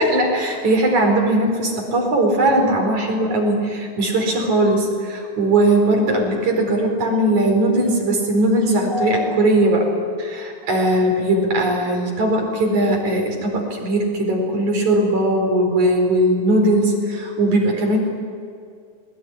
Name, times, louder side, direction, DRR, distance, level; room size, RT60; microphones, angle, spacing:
voice 1, 0.0-9.9 10.2-18.0, right 1 dB, 65° right, 1 dB, 5.9 m, -19 dB
21.5 x 21.0 x 9.9 m, 2.3 s
omnidirectional pair, 3.6 m